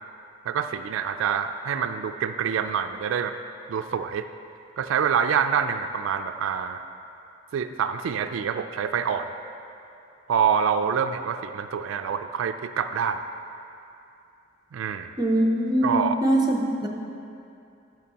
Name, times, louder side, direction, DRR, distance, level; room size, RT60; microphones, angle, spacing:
voice 1, 0.5-3.3 3.7-4.3 4.8-6.8 7.5-9.3 10.3-13.2 14.7-15.1 15.8-16.1, right 7 dB, 85° right, 9 dB, 0.3 m, -26 dB
voice 2, 15.2-16.9, right 1 dB, 20° right, 1 dB, 0.6 m, -22 dB
12.0 x 6.1 x 2.9 m, 2.7 s
head